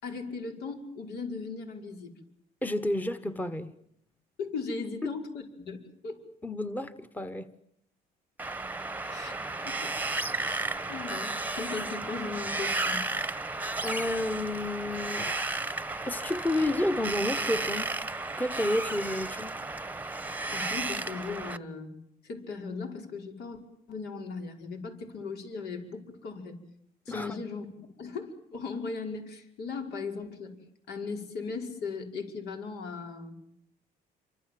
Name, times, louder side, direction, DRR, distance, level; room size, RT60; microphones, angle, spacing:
voice 1, 0.0-2.1 4.4-6.2 9.1-9.9 10.4-13.1 20.5-21.9 22.2-23.6 23.9-26.6 27.1-27.7 28.0-30.6 30.9-33.4, left 4 dB, 75° left, 3 dB, 5.5 m, -38 dB
voice 2, 2.6-3.7 5.0-5.1 6.4-7.5 9.0-9.3 13.8-15.4 16.1-17.9 18.4-19.5 27.1-27.4, left 1 dB, 10° left, 9 dB, 1.3 m, -31 dB
Wind, 8.4-21.6, right 2 dB, 10° right, 1.1 m, -33 dB
28.0 x 25.0 x 7.7 m, 0.70 s
cardioid pair, 110°, 17 cm